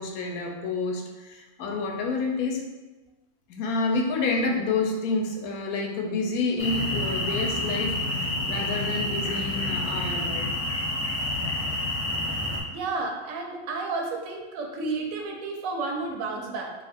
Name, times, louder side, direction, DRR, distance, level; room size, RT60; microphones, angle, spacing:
voice 1, 0.0-2.6 3.5-10.5, left 3 dB, 80° left, 1 dB, 1.0 m, -29 dB
sound 1, 6.6-12.6, left 1 dB, 55° left, 0.3 m, -28 dB
voice 2, 12.7-16.7, right 3 dB, 75° right, 1 dB, 1.0 m, -31 dB
2.7 x 2.5 x 4.1 m, 1.2 s
omnidirectional pair, 1.5 m